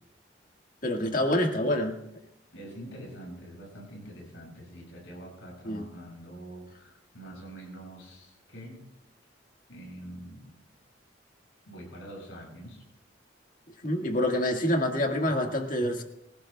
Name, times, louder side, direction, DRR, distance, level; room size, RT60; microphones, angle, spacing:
voice 1, 0.8-2.0 5.6-5.9 13.8-16.0, left 1 dB, 45° left, 2 dB, 1.8 m, -26 dB
voice 2, 2.5-8.9 9.7-10.5 11.7-12.8, right 1 dB, 90° left, -1 dB, 7.1 m, -45 dB
25.0 x 15.5 x 2.3 m, 0.87 s
head